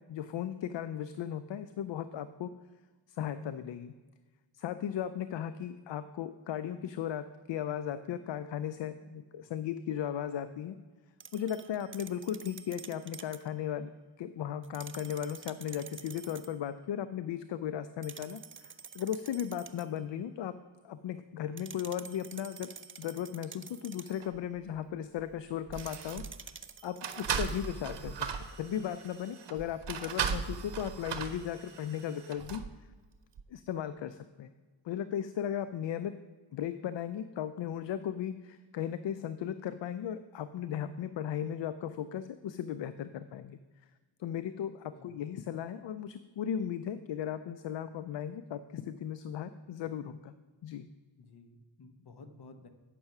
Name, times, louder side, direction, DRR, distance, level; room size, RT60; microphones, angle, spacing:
voice 1, 0.0-2.5 3.1-3.9 4.5-10.8 11.3-13.9 14.2-20.6 20.8-22.7 23.0-26.3 26.8-28.3 28.6-32.6 33.5-34.5 34.8-36.1 36.5-43.6 44.2-50.3 50.6-50.9, left 9 dB, 75° left, 13 dB, 0.5 m, -36 dB
sound 1, 11.2-13.5 14.6-16.6 18.0-20.0 21.6-24.3 25.7-27.7, right 6 dB, 30° right, 0.5 m, -49 dB
sound 2, 24.2-24.4 25.2-25.3 25.7-26.4 27.0-32.7 33.3-33.4, right 7 dB, 65° right, 0.8 m, -37 dB
voice 2, 51.2-52.7, left 3 dB, 60° left, 7 dB, 1.1 m, -53 dB
8.6 x 6.5 x 5.8 m, 1.4 s
cardioid pair, 65°, 45 cm